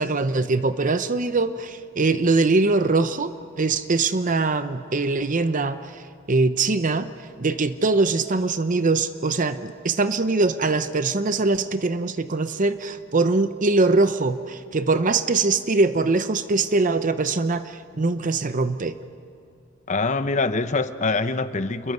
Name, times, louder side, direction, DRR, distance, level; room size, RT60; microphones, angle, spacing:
voice 1, 0.0-7.1 7.4-19.0, right 3 dB, 40° right, 11 dB, 0.7 m, -22 dB
voice 2, 19.9-21.9, left 3 dB, 35° left, 11 dB, 0.9 m, -24 dB
28.5 x 22.5 x 8.1 m, 2.5 s
head